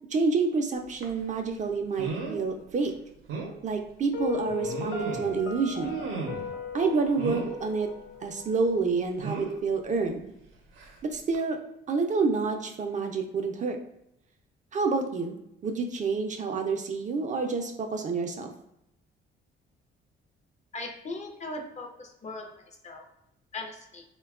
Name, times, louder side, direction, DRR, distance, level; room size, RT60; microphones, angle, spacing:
voice 1, 0.1-2.9 3.6-6.0 6.7-7.9 8.2-10.3 11.0-11.6 11.9-13.8 14.7-15.4 15.6-18.5, right 4 dB, 40° right, 4 dB, 0.4 m, -28 dB
sound 1, 1.0-1.2 2.0-2.4 2.8-2.9 3.3-3.5 4.5-5.4 5.8-6.5 7.2-7.6 9.2-9.6 10.8-11.0 11.3-11.4, right 4 dB, 90° right, 0.6 m, -35 dB
Piano, 4.1-9.1, left 5 dB, 90° left, 0.4 m, -38 dB
voice 2, 20.7-22.5 22.8-23.0 23.5-24.0, left 2 dB, 35° left, 3 dB, 0.5 m, -38 dB
3.3 x 2.2 x 2.3 m, 0.83 s
cardioid pair, 90°, 20 cm